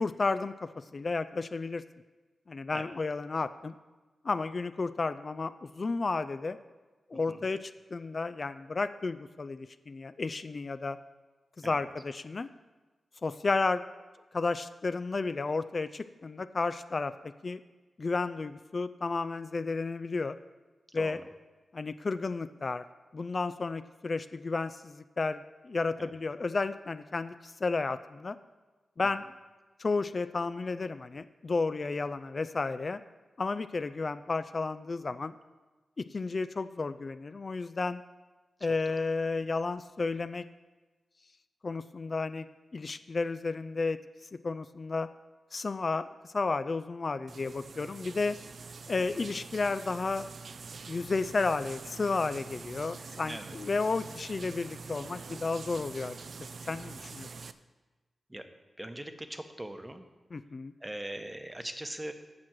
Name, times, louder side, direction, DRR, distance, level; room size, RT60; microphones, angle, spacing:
voice 1, 0.0-1.8 2.5-3.7 4.2-6.6 7.1-11.0 11.6-12.5 13.2-13.8 14.3-17.1 17.4-17.6 18.0-20.3 20.9-21.2 21.7-22.8 23.1-28.4 29.0-29.2 29.8-33.0 33.4-35.3 36.0-38.0 38.6-40.4 41.6-42.5 42.7-44.0 44.4-45.1 45.5-46.1 46.3-48.4 48.9-50.3 50.9-56.2 56.7-57.3 60.3-60.7, left 3 dB, 45° left, 13 dB, 0.3 m, -32 dB
voice 2, 20.9-21.2 26.0-26.1 38.6-38.7 49.1-49.3 53.3-53.6 58.3-58.5 58.8-60.1 60.8-62.1, right 1 dB, 15° right, 8 dB, 0.9 m, -41 dB
sound 1, 47.3-57.5, right 4 dB, 65° right, 0.4 m, -45 dB
7.3 x 6.1 x 7.6 m, 1.3 s
cardioid pair, 70°, 0 cm